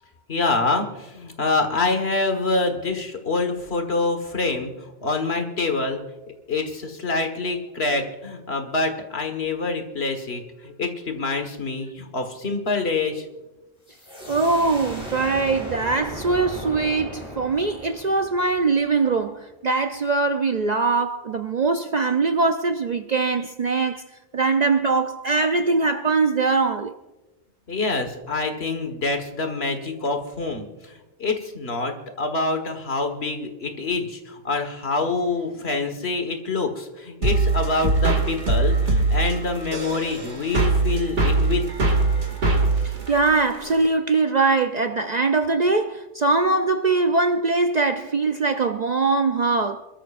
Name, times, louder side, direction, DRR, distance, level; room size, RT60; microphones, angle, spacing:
voice 1, 0.3-6.0 6.5-13.3 27.7-41.7, left 3 dB, 60° left, 1.8 m, -26 dB
sound 1, 13.9-19.4, equal, 25° left, 3.0 m, -37 dB
voice 2, 14.3-24.1 24.3-26.9 42.8-49.9, right 3 dB, 50° right, 0.6 m, -22 dB
sound 2, 37.2-43.9, right 3 dB, 75° right, 2.5 m, -22 dB
27.0 x 13.5 x 2.5 m
omnidirectional pair, 1.2 m